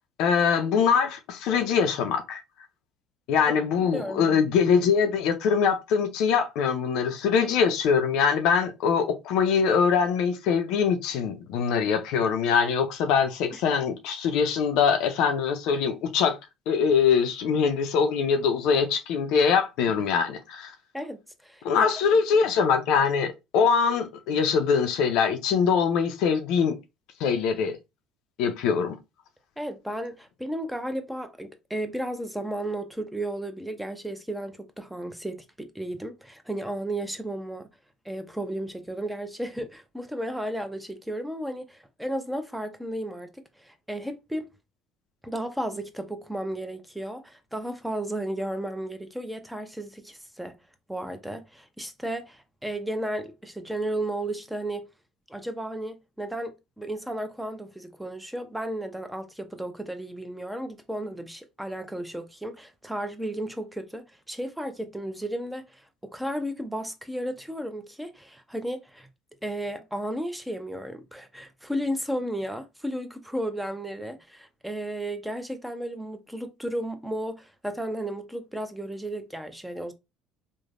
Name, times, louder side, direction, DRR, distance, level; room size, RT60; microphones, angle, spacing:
voice 1, 0.2-2.4 3.3-16.4 16.7-20.7 21.6-26.8 27.2-27.8 28.4-29.0, left 6 dB, 65° left, 0.4 m, -23 dB
voice 2, 3.9-4.4 13.5-13.6 20.9-21.9 29.6-37.7 38.0-44.5 45.2-50.6 50.9-54.9 55.3-69.1 69.4-79.9, right 1 dB, 5° right, 0.6 m, -34 dB
3.2 x 2.1 x 2.4 m
hypercardioid pair, 65°, 0 cm